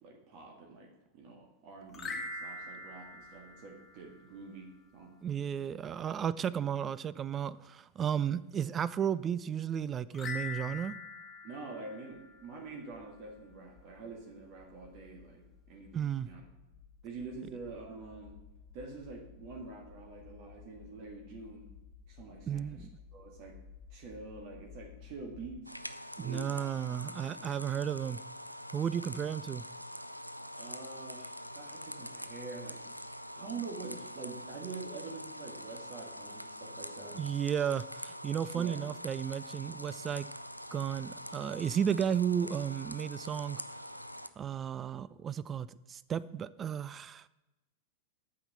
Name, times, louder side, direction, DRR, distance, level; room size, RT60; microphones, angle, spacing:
voice 1, 0.0-5.1 11.4-16.4 17.0-18.4 18.7-21.6 22.1-23.6 23.9-25.8 26.2-27.4 30.5-32.8 33.3-37.2 38.5-38.8, right 4 dB, 45° right, 1.8 m, -46 dB
sound 1, 1.9-4.4 10.1-12.7, left 3 dB, 20° left, 1.5 m, -43 dB
voice 2, 5.2-10.9 15.9-16.3 22.5-22.9 26.2-28.2 28.7-29.6 37.2-40.3 40.7-43.6 44.4-47.3, right 8 dB, 25° right, 0.3 m, -33 dB
sound 2, 12.1-25.6, left 6 dB, 50° left, 1.0 m, -56 dB
sound 3, 25.6-44.3, equal, 90° right, 0.4 m, -45 dB
9.0 x 5.7 x 7.6 m
figure-of-eight pair, 90°, 0 cm